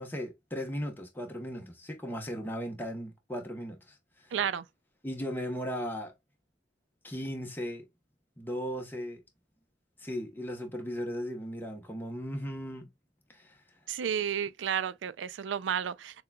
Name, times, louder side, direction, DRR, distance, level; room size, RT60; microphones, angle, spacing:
voice 1, 0.0-4.3 5.0-6.1 7.0-7.8 8.4-9.2 10.0-12.9 13.3-13.6, equal, 10° left, 0.9 m, -37 dB
voice 2, 4.3-4.7 13.9-16.2, right 8 dB, 85° right, 0.4 m, -32 dB
6.6 x 2.3 x 2.2 m
head